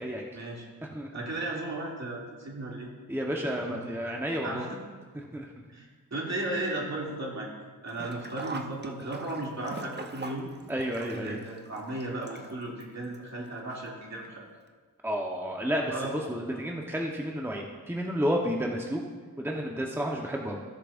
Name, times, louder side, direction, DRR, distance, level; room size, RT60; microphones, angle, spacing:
voice 1, 0.3-0.6 1.1-2.9 3.6-4.1 4.4-4.8 5.7-7.5 7.8-10.5 11.1-14.4 15.9-16.1, right 2 dB, 50° right, -4 dB, 2.7 m, -35 dB
voice 2, 3.1-4.6 5.3-5.5 10.7-11.4 15.0-19.0 19.4-20.6, equal, 5° right, 0 dB, 1.1 m, -31 dB
Sink (filling or washing), 7.9-12.8 13.1-13.2 14.2-14.3 14.7-14.8, right 3 dB, 30° right, 0.9 m, -42 dB
17.0 x 6.5 x 2.6 m, 1.4 s
cardioid pair, 50°, 35 cm